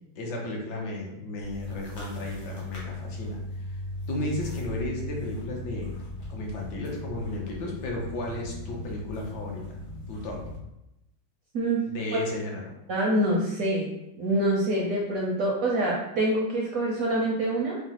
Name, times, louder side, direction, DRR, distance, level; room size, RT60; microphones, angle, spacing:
voice 1, 0.1-3.4 3.7-3.8 4.1-5.9 6.3-9.8 10.1-10.4 11.9-12.7, left 1 dB, 70° left, -1 dB, 1.3 m, -34 dB
sound 1, 1.4-10.6, left 1 dB, 85° left, 1.7 m, -38 dB
voice 2, 12.9-13.9 14.2-17.8, right 1 dB, 70° right, -3 dB, 0.8 m, -25 dB
4.8 x 2.0 x 2.8 m, 0.89 s
omnidirectional pair, 2.0 m